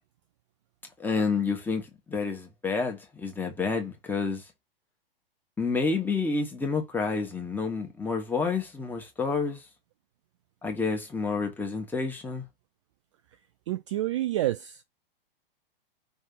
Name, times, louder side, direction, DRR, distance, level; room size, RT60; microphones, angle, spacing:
voice 1, 1.0-4.4 5.6-9.6 10.6-12.5, left 4 dB, 5° left, 1.7 m, -29 dB
voice 2, 13.7-14.8, right 14 dB, 35° right, 0.4 m, -28 dB
5.5 x 3.5 x 5.6 m
figure-of-eight pair, 110°, 29 cm